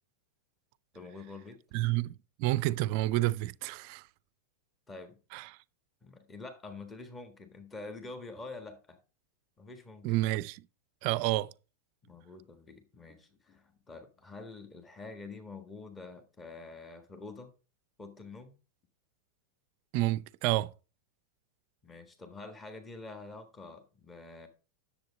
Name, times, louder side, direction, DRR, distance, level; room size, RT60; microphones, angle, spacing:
voice 1, 0.9-1.6 4.9-5.2 6.0-9.0 9.6-10.2 12.0-17.5 18.0-18.5 21.8-24.5, left 3 dB, 15° left, 1.5 m, -46 dB
voice 2, 1.7-4.0 5.3-5.5 10.0-10.6 11.0-11.5 19.9-20.7, right 17 dB, 45° right, 0.4 m, -29 dB
10.5 x 7.2 x 4.1 m
figure-of-eight pair, 90°, 0 cm